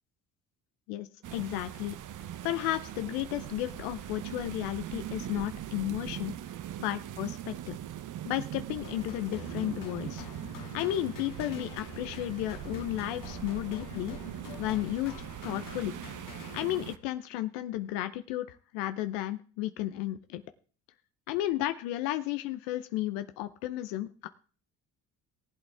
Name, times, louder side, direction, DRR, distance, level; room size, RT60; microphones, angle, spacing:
voice 1, 0.9-2.0 2.4-6.3 6.8-7.8 8.3-10.2 10.7-14.2 14.6-15.1 15.4-15.9 16.5-20.4 21.3-24.3, left 14 dB, 85° left, 11 dB, 0.8 m, -33 dB
sound 1, 1.2-17.0, right 11 dB, 50° right, 0.8 m, -41 dB
sound 2, 8.8-17.2, left 7 dB, 55° left, 2.0 m, -47 dB
18.5 x 8.3 x 3.4 m, 0.40 s
supercardioid pair, 65°, 38 cm